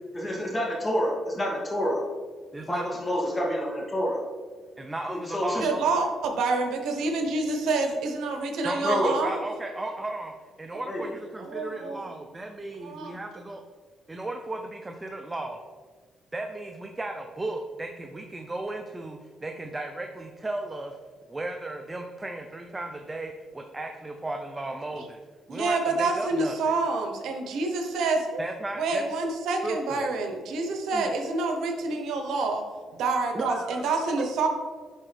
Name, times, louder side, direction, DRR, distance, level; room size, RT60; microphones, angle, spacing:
voice 1, 0.1-2.0 2.7-4.2 5.1-5.7 8.8-9.1 10.9-11.0, equal, 25° left, -2 dB, 2.0 m, -28 dB
voice 2, 2.5-2.8 4.8-5.9 8.6-13.6 14.1-15.6 16.3-21.0 21.3-25.2 25.5-26.7 28.4-29.0 29.6-30.1 30.9-31.1 33.3-33.8, right 2 dB, 20° right, 4 dB, 0.5 m, -35 dB
voice 3, 5.6-9.3 11.4-12.1 12.8-13.1 25.0-25.1 25.5-28.4 28.8-32.6 33.0-34.5, right 3 dB, 80° right, 3 dB, 0.9 m, -27 dB
10.5 x 3.6 x 3.3 m, 1.5 s
cardioid pair, 90°, 0 cm